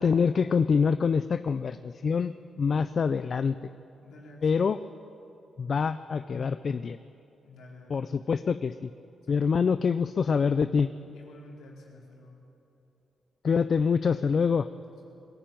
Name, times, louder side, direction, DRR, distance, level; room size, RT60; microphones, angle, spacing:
voice 1, 0.0-3.6 4.4-4.8 5.6-7.0 7.9-8.9 9.3-10.9 13.4-14.7, left 5 dB, 50° left, 12 dB, 0.4 m, -25 dB
voice 2, 4.0-4.6 7.4-8.0 9.2-9.5 11.1-12.4 14.9-15.1, left 1 dB, 90° left, -2 dB, 4.6 m, -50 dB
22.0 x 14.5 x 9.1 m, 2.9 s
cardioid pair, 105°, 0 cm